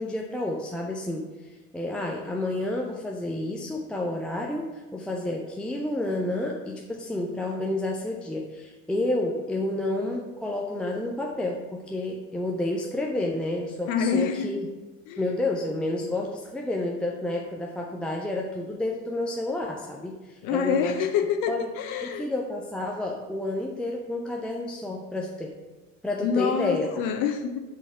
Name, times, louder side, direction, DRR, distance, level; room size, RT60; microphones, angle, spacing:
voice 1, 0.0-14.7 15.2-21.1 21.5-21.7 22.0-25.6 26.0-26.9, left 2 dB, 5° left, -1 dB, 0.4 m, -30 dB
voice 2, 13.9-14.5 15.1-15.2 20.4-22.3 26.2-27.6, left 7 dB, 45° left, 6 dB, 0.7 m, -26 dB
5.5 x 4.1 x 5.4 m, 1.3 s
figure-of-eight pair, 65°, 41 cm